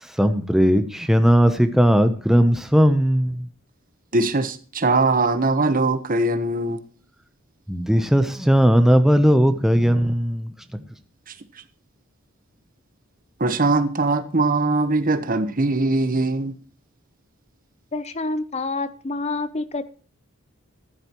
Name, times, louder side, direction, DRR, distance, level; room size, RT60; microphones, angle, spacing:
voice 1, 0.2-3.4 7.7-10.5, equal, ahead, 0.7 m, -17 dB
voice 2, 4.1-6.8 13.4-16.5, right 2 dB, 40° right, 1.1 m, -21 dB
voice 3, 17.9-19.9, left 3 dB, 30° left, 0.7 m, -27 dB
14.5 x 11.5 x 3.0 m
head